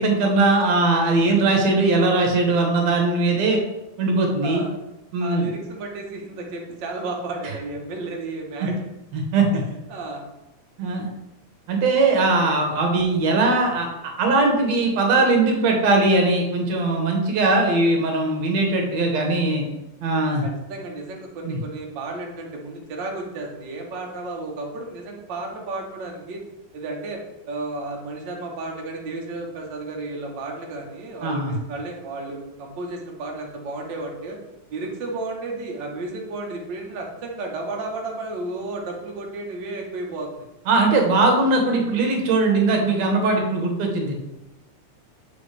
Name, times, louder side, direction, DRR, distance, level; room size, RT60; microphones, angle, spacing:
voice 1, 0.0-3.6 4.0-4.6 5.1-5.5 9.1-9.5 10.8-11.1 11.7-19.6 20.0-20.4 21.4-21.6 31.2-31.6 40.7-44.1, right 3 dB, 65° right, 2 dB, 2.1 m, -20 dB
voice 2, 4.4-4.8 5.2-8.8 9.9-10.2 12.1-12.5 20.4-26.4 26.7-27.2 27.5-34.4 34.7-40.4, right 2 dB, 80° right, 0 dB, 1.0 m, -33 dB
7.1 x 4.8 x 3.3 m, 0.96 s
omnidirectional pair, 3.7 m